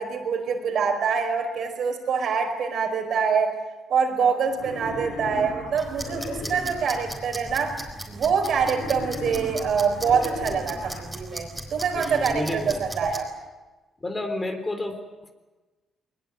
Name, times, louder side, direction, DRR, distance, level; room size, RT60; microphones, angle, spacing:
voice 1, 0.0-3.5 3.9-7.7 8.1-13.3, right 6 dB, 65° right, 4 dB, 5.0 m, -25 dB
Wild animals, 4.5-7.0 8.5-11.0, left 2 dB, 75° left, 4.1 m, -37 dB
sound 1, 5.8-13.2, right 1 dB, 5° right, 5.4 m, -38 dB
voice 2, 6.4-6.7 11.9-12.8 14.0-15.0, left 2 dB, 25° left, 7 dB, 3.9 m, -31 dB
21.5 x 21.0 x 9.3 m, 1.2 s
cardioid pair, 90°, 0 cm